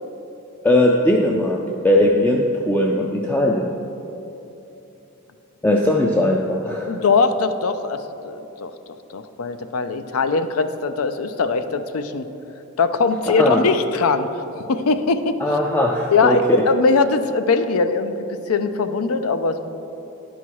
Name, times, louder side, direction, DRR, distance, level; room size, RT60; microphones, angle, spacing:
voice 1, 0.6-3.7 5.6-7.0 13.3-13.6 15.4-16.6, left 1 dB, 10° left, 0 dB, 0.3 m, -19 dB
voice 2, 6.9-8.7 9.1-12.3 12.8-14.3 14.7-15.4 16.1-19.7, left 4 dB, 75° left, 10 dB, 0.5 m, -21 dB
11.0 x 5.6 x 4.7 m, 3.0 s
head